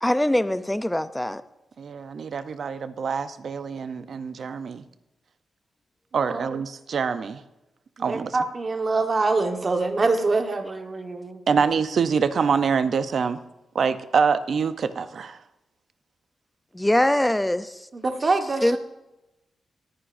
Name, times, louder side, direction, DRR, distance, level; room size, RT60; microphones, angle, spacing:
voice 1, 0.0-1.4 16.7-17.8 18.6-18.8, left 1 dB, 5° left, 14 dB, 0.5 m, -22 dB
voice 2, 1.8-4.8 6.1-7.4 8.0-8.4 11.5-13.4 13.7-15.4, right 6 dB, 60° right, 12 dB, 0.6 m, -25 dB
voice 3, 8.0-11.4 17.9-18.8, right 3 dB, 35° right, 5 dB, 1.4 m, -25 dB
20.0 x 9.6 x 2.6 m, 0.96 s
cardioid pair, 110°, 0 cm